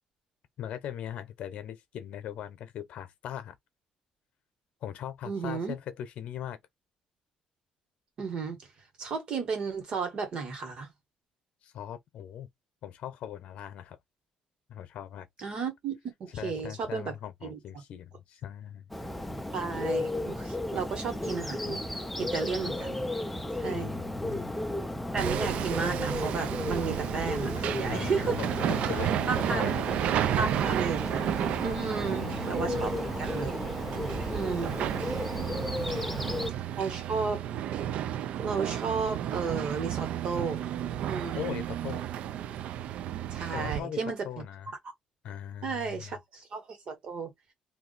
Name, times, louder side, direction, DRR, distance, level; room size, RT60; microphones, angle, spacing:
voice 1, 0.6-3.5 4.8-6.6 11.6-12.5 12.8-14.0 14.7-15.3 16.3-18.9 23.7-24.5 27.9-29.8 32.0-32.9 35.7-36.3 41.3-42.0 43.5-44.7 45.2-46.2, left 10 dB, 65° left, 0.8 m, -40 dB
voice 2, 5.2-5.7 8.2-8.6 9.0-10.9 15.4-17.1 17.4-17.6 19.5-21.8 22.2-23.0 23.6-24.0 25.1-28.3 29.3-29.6 30.4-31.3 31.6-33.6 34.3-34.8 36.7-37.4 38.4-40.6 41.0-41.6 43.3-44.3 45.6-47.3, right 5 dB, 45° right, 1.5 m, -33 dB
Bird, 18.9-36.5, left 1 dB, 5° left, 0.4 m, -34 dB
Hammer, 25.2-43.8, right 11 dB, 65° right, 0.3 m, -32 dB
2.8 x 2.6 x 4.0 m
cardioid pair, 160°, 2 cm